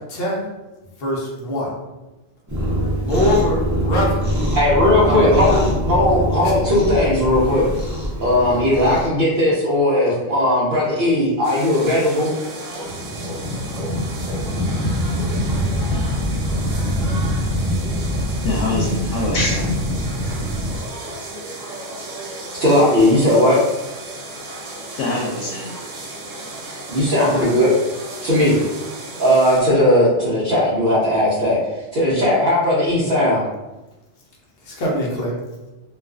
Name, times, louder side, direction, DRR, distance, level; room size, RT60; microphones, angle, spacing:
voice 1, 0.1-0.5 1.0-1.7 3.0-4.4 5.0-5.6 6.4-6.5 8.9-9.0 34.6-35.4, left 1 dB, 60° left, -3 dB, 0.8 m, -23 dB
Cat, 2.5-9.1, equal, 25° right, 0.4 m, -23 dB
voice 2, 4.5-7.7 8.2-12.3 22.6-23.6 26.9-27.7 28.2-28.6 29.2-31.6 31.9-33.4, left 1 dB, 55° right, -10 dB, 0.7 m, -17 dB
sound 1, 11.4-29.6, right 2 dB, 85° right, 1.0 m, -34 dB
sound 2, 12.7-20.8, equal, 10° left, 1.3 m, -24 dB
voice 3, 18.4-19.7 24.9-25.8, left 2 dB, 90° left, -4 dB, 0.9 m, -24 dB
2.4 x 2.3 x 2.3 m, 1.1 s
omnidirectional pair, 1.3 m